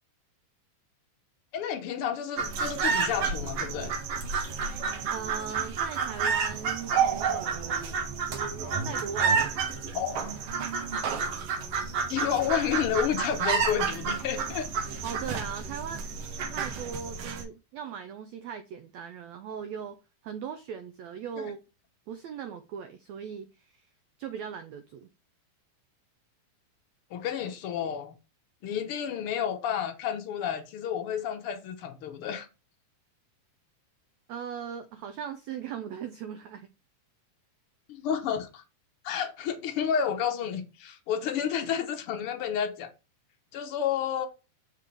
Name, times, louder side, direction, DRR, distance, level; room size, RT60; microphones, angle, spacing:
voice 1, 1.5-3.9 9.9-10.3 12.1-14.7 21.4-21.5 27.1-28.1 28.6-32.5 37.9-38.6 39.0-42.9 43.5-44.3, left 8 dB, 75° left, 1.3 m, -30 dB
sound 1, 2.4-17.4, right 5 dB, 65° right, 1.6 m, -30 dB
voice 2, 5.1-10.0 15.0-16.1 16.4-20.0 20.2-21.6 22.1-23.9 24.2-25.1 34.3-36.7, right 7 dB, 85° right, 1.5 m, -39 dB
7.5 x 5.6 x 3.4 m
omnidirectional pair, 3.9 m